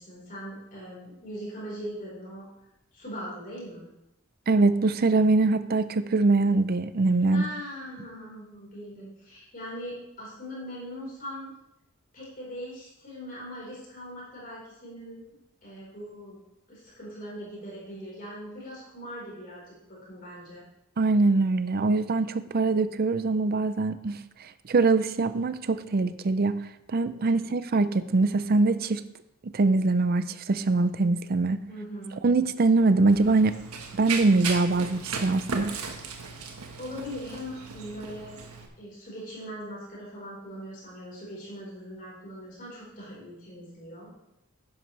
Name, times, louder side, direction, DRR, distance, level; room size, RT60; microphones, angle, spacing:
voice 1, 0.0-2.5 2.9-3.9 7.3-11.5 12.1-15.2 15.6-16.4 16.7-20.6 27.2-27.5 31.7-32.2 36.8-38.4 38.8-44.1, equal, 40° left, -6 dB, 4.4 m, -40 dB
voice 2, 4.5-7.4 21.0-24.2 24.7-26.6 26.9-29.0 29.5-31.6 32.2-33.6 33.9-35.7, right 3 dB, 45° right, 13 dB, 0.5 m, -23 dB
Run, 33.1-38.7, right 4 dB, 85° right, 1.4 m, -36 dB
11.0 x 10.5 x 3.3 m, 0.86 s
head